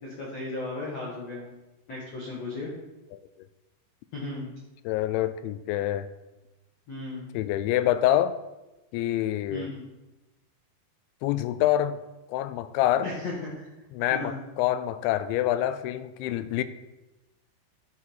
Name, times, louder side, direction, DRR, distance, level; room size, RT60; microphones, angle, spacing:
voice 1, 0.0-1.5 1.9-2.7 4.1-4.5 6.9-7.3 9.5-9.8 13.0-13.6 14.1-14.4, left 2 dB, 60° left, -5 dB, 1.7 m, -35 dB
voice 2, 4.9-6.1 7.3-8.3 8.9-9.7 11.2-12.0 12.3-13.1 13.9-16.6, left 12 dB, 85° left, 13 dB, 2.9 m, -26 dB
12.5 x 4.7 x 5.6 m, 1.0 s
omnidirectional pair, 5.2 m